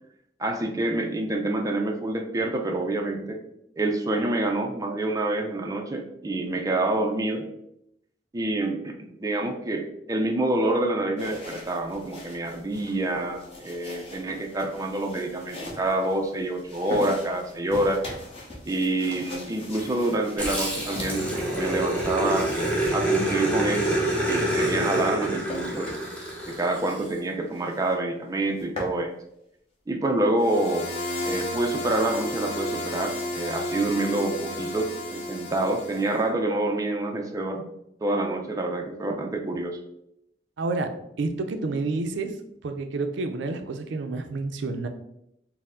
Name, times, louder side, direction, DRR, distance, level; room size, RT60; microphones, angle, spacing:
voice 1, 0.4-3.4 3.8-7.5 8.3-18.0 18.6-22.5 22.9-26.0 26.5-29.1 29.9-30.9 31.2-37.6 38.0-39.8, right 2 dB, 20° right, 3 dB, 0.4 m, -27 dB
sound 1, 11.2-22.8 24.1-25.2 25.5-25.7 26.1-26.3 26.7-26.8 27.1-27.2 27.5-28.0 28.3-29.0, left 2 dB, 35° left, 0.9 m, -40 dB
Growling, 20.4-27.1, right 1 dB, 5° left, 0.8 m, -27 dB
sound 2, 30.4-36.2, left 1 dB, 70° left, 0.6 m, -32 dB
voice 2, 40.6-40.9 41.2-42.3 42.6-44.9, right 3 dB, 80° right, 6 dB, 0.4 m, -29 dB
4.4 x 2.0 x 3.6 m, 0.79 s
head